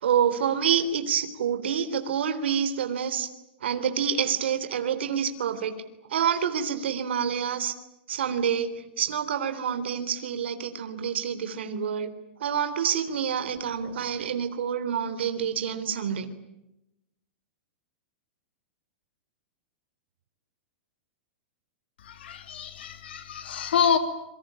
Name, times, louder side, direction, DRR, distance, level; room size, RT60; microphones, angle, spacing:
voice 1, 0.0-3.3 3.6-5.7 6.1-7.7 8.1-12.1 12.4-16.3, right 8 dB, 90° right, 10 dB, 3.5 m, -27 dB
voice 2, 22.0-24.0, left 7 dB, 75° left, 9 dB, 3.0 m, -27 dB
27.0 x 24.5 x 8.9 m, 0.88 s
supercardioid pair, 175°, 6 cm